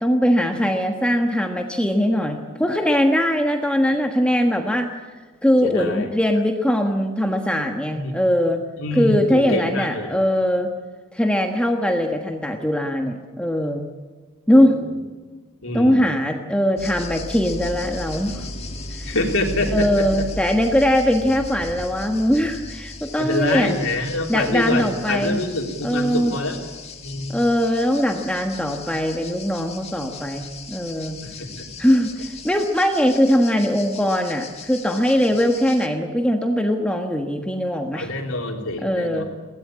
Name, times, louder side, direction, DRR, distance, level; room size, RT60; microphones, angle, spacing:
voice 1, 0.0-4.9 5.4-8.6 8.9-10.7 11.1-13.9 14.5-14.8 15.7-18.4 18.9-19.1 19.7-23.7 24.3-25.4 25.8-26.3 27.3-31.2 31.8-38.1 38.8-39.2, equal, 5° left, 3 dB, 1.3 m, -21 dB
voice 2, 5.6-6.1 7.9-8.1 8.8-10.1 14.5-14.7 15.6-16.1 19.0-20.3 23.2-26.6 27.0-27.4 31.2-31.7 37.9-39.2, left 1 dB, 65° left, 2 dB, 3.4 m, -25 dB
sound 1, 16.8-35.9, left 2 dB, 30° left, 1.8 m, -36 dB
23.0 x 18.0 x 8.8 m, 1.4 s
head